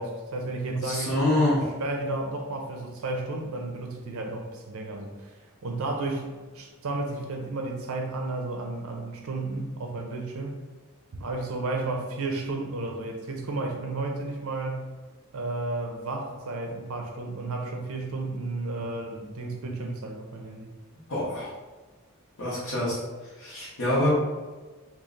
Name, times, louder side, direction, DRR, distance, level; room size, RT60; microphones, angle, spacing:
voice 1, 0.0-1.1 1.6-5.3 5.6-10.6 11.2-14.9 15.3-20.7, right 2 dB, 65° right, 2 dB, 0.5 m, -32 dB
voice 2, 0.7-1.6 21.1-21.5 22.4-23.0 23.4-24.1, left 1 dB, 65° left, -9 dB, 0.9 m, -26 dB
3.1 x 2.4 x 3.7 m, 1.3 s
head